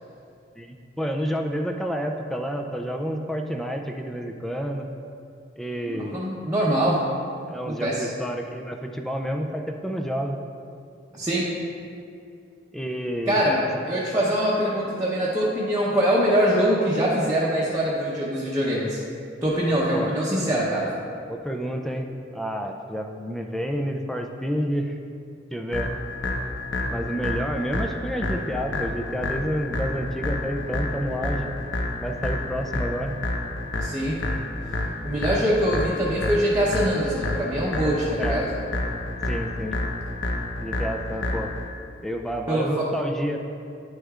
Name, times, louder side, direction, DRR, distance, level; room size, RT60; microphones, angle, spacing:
voice 1, 0.6-4.9 5.6-6.3 7.5-10.4 12.7-13.6 19.9-20.2 21.3-25.0 25.5-26.0 26.9-31.5 32.0-33.2 38.2-38.4 39.3-39.8 40.6-41.5 42.0-43.4, equal, ahead, 3 dB, 0.3 m, -29 dB
voice 2, 5.9-7.0 7.7-8.1 11.1-11.5 13.3-19.0 19.4-20.9 33.8-34.2 35.0-38.5 42.5-42.9, equal, 15° right, -7 dB, 0.8 m, -23 dB
sound 1, 25.7-41.7, left 2 dB, 90° left, 0.9 m, -29 dB
9.7 x 6.3 x 2.4 m, 2.5 s
head